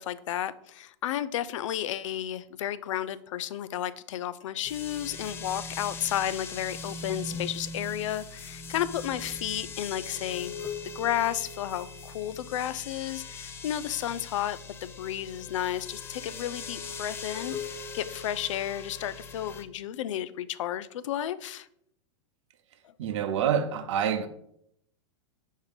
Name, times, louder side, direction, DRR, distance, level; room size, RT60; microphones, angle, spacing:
voice 1, 0.0-10.5 11.0-21.7, left 11 dB, 75° left, 0.4 m, -32 dB
sound 1, 4.6-19.6, left 4 dB, 15° left, 0.4 m, -40 dB
voice 2, 23.0-24.3, right 8 dB, 70° right, 0.8 m, -27 dB
5.5 x 3.6 x 4.9 m
supercardioid pair, 140°, 16 cm